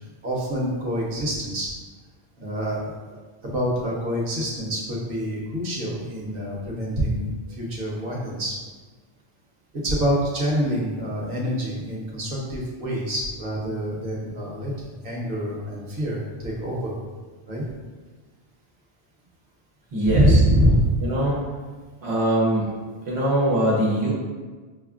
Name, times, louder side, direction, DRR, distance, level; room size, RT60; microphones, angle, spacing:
voice 1, 0.2-1.7 2.4-8.6 9.7-14.7 15.0-16.9 17.5-17.6 20.1-20.9 23.2-23.3, equal, 60° right, -4 dB, 1.1 m, -25 dB
voice 2, 19.9-20.4 21.0-21.4 22.0-22.8 23.1-24.1, right 1 dB, 90° right, -5 dB, 1.1 m, -22 dB
6.2 x 2.1 x 2.4 m, 1.4 s
omnidirectional pair, 1.1 m